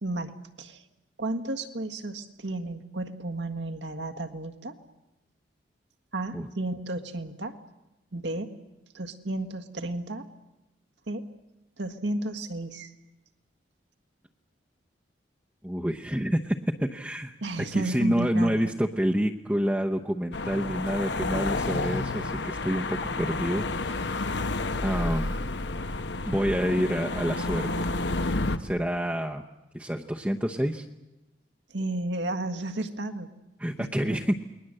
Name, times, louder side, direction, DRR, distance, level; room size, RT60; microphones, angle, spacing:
voice 1, 0.0-0.8 1.2-4.8 6.1-7.6 8.1-8.5 8.9-10.3 11.1-11.3 11.8-12.9 17.4-18.7 31.7-33.3 33.8-34.3, right 2 dB, 70° right, 6 dB, 1.7 m, -33 dB
voice 2, 15.6-17.3 17.7-24.1 24.8-25.4 26.2-27.9 28.6-29.4 29.7-30.8 33.6-34.3, equal, 10° right, 1 dB, 0.9 m, -28 dB
sound 1, 20.3-28.6, left 2 dB, 70° left, 1.1 m, -30 dB
29.0 x 21.0 x 7.8 m, 0.98 s
head